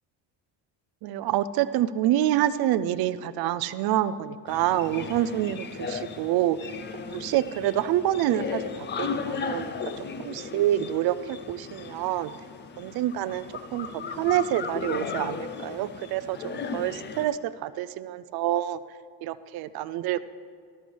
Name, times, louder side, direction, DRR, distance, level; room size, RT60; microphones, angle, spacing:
voice 1, 1.0-6.6 7.1-12.3 12.8-18.8 19.2-20.2, right 12 dB, 65° right, 15 dB, 0.5 m, -27 dB
sound 1, 4.5-17.3, left 5 dB, 25° left, 0.5 m, -36 dB
13.0 x 13.0 x 3.3 m, 2.2 s
cardioid pair, 140°, 40 cm